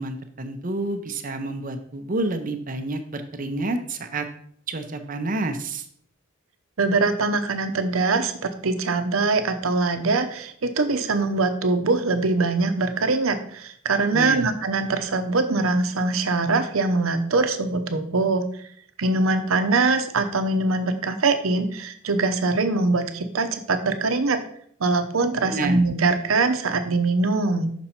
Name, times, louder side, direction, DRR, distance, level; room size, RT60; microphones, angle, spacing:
voice 1, 0.0-4.3 4.7-5.9 14.1-14.5 25.4-25.8, right 2 dB, 40° right, 7 dB, 0.7 m, -29 dB
voice 2, 6.8-18.5 19.0-24.4 24.8-27.7, right 3 dB, 85° right, 8 dB, 0.8 m, -23 dB
6.1 x 5.5 x 4.3 m, 0.63 s
head